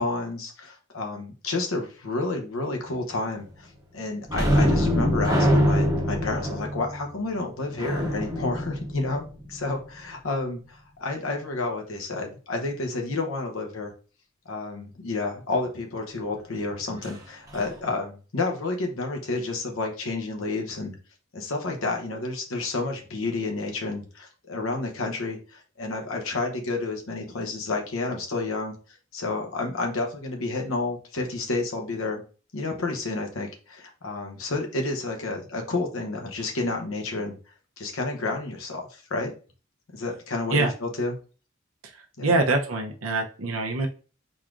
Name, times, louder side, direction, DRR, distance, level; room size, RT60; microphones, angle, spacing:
voice 1, 0.0-3.7 3.9-13.9 14.4-20.9 21.3-28.7 29.1-32.2 32.5-37.4 37.8-39.3 39.9-41.2 42.2-42.3, left 3 dB, 90° left, 2 dB, 0.9 m, -30 dB
sound 1, 4.3-9.7 17.0-17.2 17.5-17.7, equal, 15° right, 0.8 m, -24 dB
voice 2, 41.8-43.9, right 2 dB, 85° right, 2 dB, 0.8 m, -25 dB
4.7 x 4.0 x 2.5 m, 0.37 s
head